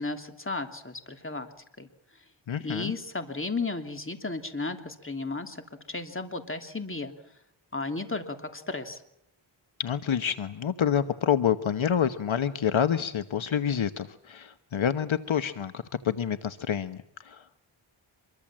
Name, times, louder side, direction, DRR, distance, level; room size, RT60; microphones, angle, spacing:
voice 1, 0.0-1.5 1.8-1.9 2.6-5.6 5.9-7.1 7.7-9.0, left 3 dB, 25° left, 6 dB, 3.1 m, -34 dB
voice 2, 2.5-2.9 9.8-17.6, left 8 dB, 70° left, 11 dB, 1.2 m, -28 dB
25.5 x 23.0 x 7.5 m, 0.79 s
wide cardioid pair, 100°, 49 cm